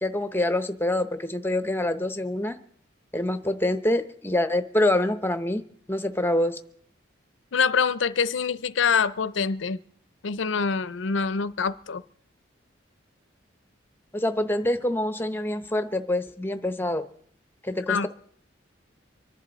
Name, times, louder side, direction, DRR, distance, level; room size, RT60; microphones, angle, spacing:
voice 1, 0.0-2.6 3.1-5.6 5.9-6.6 14.1-17.1 17.6-18.1, left 1 dB, 10° left, 10 dB, 0.8 m, -26 dB
voice 2, 7.5-9.8 10.2-12.0 17.9-18.1, left 5 dB, 75° left, 16 dB, 0.6 m, -25 dB
25.0 x 11.0 x 4.0 m, 0.62 s
head